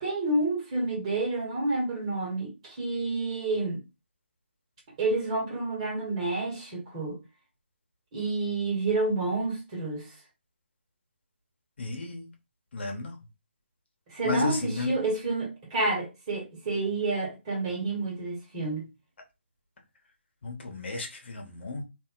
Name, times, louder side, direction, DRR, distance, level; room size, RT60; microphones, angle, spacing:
voice 1, 0.0-3.8 5.0-7.2 8.1-10.1 14.1-18.9, right 2 dB, 30° right, 1.4 m, -29 dB
voice 2, 11.8-12.3 12.7-13.1 14.2-14.9 20.4-21.8, left 3 dB, 60° left, 1.0 m, -33 dB
2.5 x 2.1 x 3.8 m
figure-of-eight pair, 150°, 7 cm